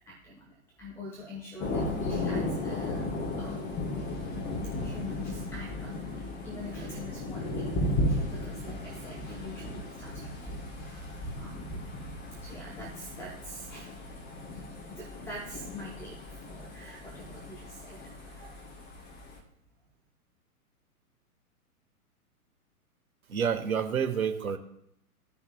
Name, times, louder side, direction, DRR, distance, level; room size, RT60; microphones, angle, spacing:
voice 1, 0.1-3.8 4.8-11.9 12.4-14.0 14.5-19.0, left 1 dB, 5° left, -4 dB, 0.8 m, -45 dB
Thunder, 1.6-19.4, left 1 dB, 25° left, 1.2 m, -35 dB
voice 2, 23.3-24.6, right 7 dB, 70° right, 7 dB, 1.0 m, -28 dB
15.0 x 5.6 x 2.2 m, 0.77 s
figure-of-eight pair, 115°, 45 cm